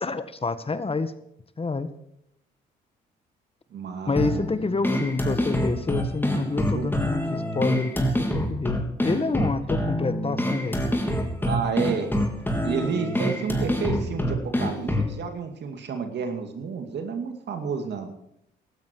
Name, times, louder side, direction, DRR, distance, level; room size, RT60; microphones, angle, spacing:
voice 1, 0.0-1.1 1.6-1.9 4.1-10.8, left 3 dB, 30° left, 12 dB, 1.6 m, -28 dB
voice 2, 3.7-4.4 6.7-6.9 11.4-12.1 12.6-18.1, right 5 dB, 60° right, 6 dB, 2.4 m, -30 dB
sound 1, 4.2-15.2, equal, 10° left, 3.5 m, -26 dB
16.5 x 12.5 x 4.7 m, 0.76 s
supercardioid pair, 60°, 20 cm